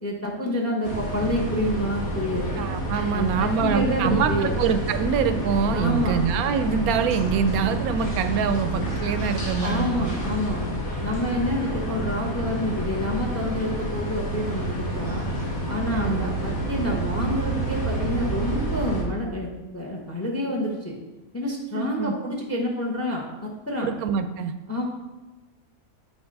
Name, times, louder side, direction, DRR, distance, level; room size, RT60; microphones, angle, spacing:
voice 1, 0.0-2.5 3.1-4.5 5.7-6.2 9.6-10.7 11.0-15.3 15.7-21.0 21.3-23.9 24.7-24.8, left 1 dB, 15° left, 0 dB, 0.7 m, -28 dB
sound 1, 0.8-19.0, right 1 dB, 75° left, 1.8 m, -28 dB
voice 2, 2.6-10.1 15.9-16.3 21.7-22.1 23.8-24.5, right 6 dB, 85° right, 9 dB, 1.0 m, -25 dB
8.2 x 3.2 x 5.3 m, 1.1 s
omnidirectional pair, 1.5 m